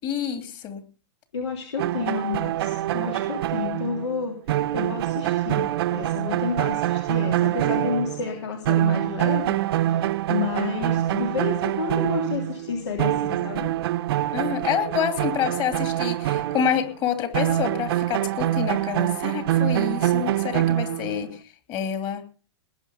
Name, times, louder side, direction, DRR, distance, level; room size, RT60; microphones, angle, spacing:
voice 1, 0.0-0.8 14.3-21.4 21.7-22.2, left 8 dB, 30° left, 7 dB, 2.9 m, -27 dB
voice 2, 1.3-4.4 4.7-10.0 10.3-13.7, left 5 dB, 80° left, 3 dB, 3.2 m, -30 dB
sound 1, 1.8-8.4 8.7-16.9 17.3-21.3, right 13 dB, 60° right, 0.7 m, -25 dB
19.5 x 9.2 x 5.3 m, 0.37 s
hypercardioid pair, 135°, 15 cm